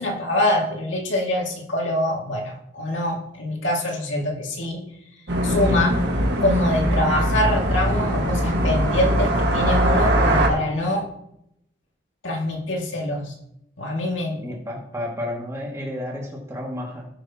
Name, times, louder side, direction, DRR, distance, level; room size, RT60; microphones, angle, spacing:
voice 1, 0.0-4.8 5.4-5.9 6.4-11.1 12.2-13.3 13.8-14.5, left 1 dB, 75° left, -1 dB, 2.5 m, -24 dB
sound 1, 5.3-10.5, equal, 55° right, 1.8 m, -21 dB
voice 2, 5.6-6.1 14.4-17.1, left 1 dB, 15° right, -3 dB, 2.3 m, -32 dB
17.5 x 6.6 x 3.0 m, 0.78 s
head